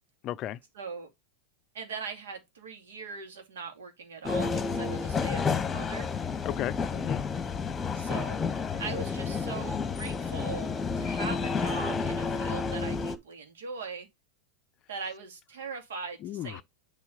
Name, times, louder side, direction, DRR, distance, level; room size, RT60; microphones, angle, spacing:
voice 1, 0.2-0.6 6.4-7.2 16.2-16.6, left 12 dB, 40° left, 0.5 m, -34 dB
voice 2, 0.7-1.1 1.7-6.1 7.9-8.4 8.8-14.1 14.9-16.6, right 5 dB, 75° right, 2.4 m, -40 dB
sound 1, 4.2-13.2, left 5 dB, 20° left, 1.2 m, -30 dB
7.3 x 3.8 x 5.1 m
hypercardioid pair, 100°, 0 cm